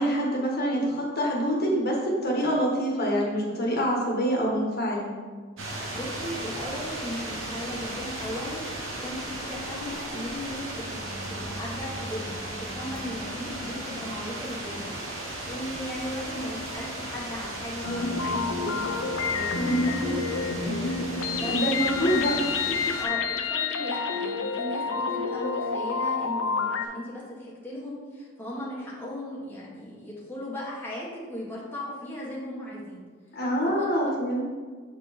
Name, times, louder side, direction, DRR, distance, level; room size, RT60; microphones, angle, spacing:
voice 1, 0.0-5.1 19.5-20.0 21.4-22.3 22.7-22.8 33.3-34.4, equal, 50° left, -2 dB, 1.5 m, -26 dB
sound 1, 5.6-23.0, right 1 dB, 65° right, 1.3 m, -36 dB
voice 2, 5.9-20.2 20.5-21.5 22.0-22.4 22.9-33.0 33.8-34.1, left 1 dB, 10° left, -6 dB, 1.3 m, -37 dB
sound 2, 17.8-26.9, left 5 dB, 90° left, 0.6 m, -29 dB
7.2 x 4.6 x 4.2 m, 1.5 s
head